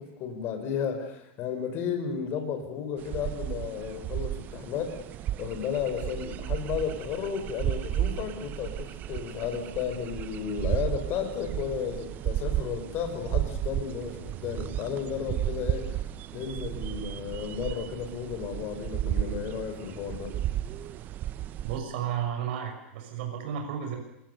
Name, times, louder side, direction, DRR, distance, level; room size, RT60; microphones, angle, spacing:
voice 1, 0.0-5.0 5.4-16.0 16.3-20.3, left 7 dB, 35° left, 6 dB, 5.1 m, -33 dB
sound 1, 3.0-21.8, right 12 dB, 25° right, 0.8 m, -33 dB
voice 2, 21.6-24.0, right 8 dB, 55° right, 4 dB, 6.3 m, -32 dB
27.0 x 20.0 x 6.9 m, 0.83 s
supercardioid pair, 165°, 7 cm